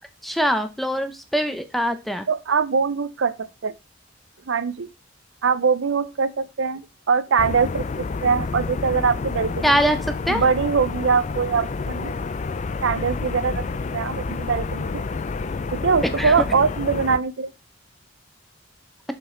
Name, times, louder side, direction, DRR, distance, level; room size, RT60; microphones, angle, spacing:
voice 1, 0.2-2.3 9.6-10.0 10.3-10.4 16.2-16.3, equal, ahead, 0.7 m, -22 dB
voice 2, 2.3-3.7 4.5-4.9 5.4-9.8 10.3-12.1 12.8-13.6 13.9-15.0 15.7-17.5, right 5 dB, 85° right, 0.6 m, -22 dB
sound 1, 7.4-17.2, left 4 dB, 40° left, 0.4 m, -29 dB
6.1 x 5.8 x 3.9 m
head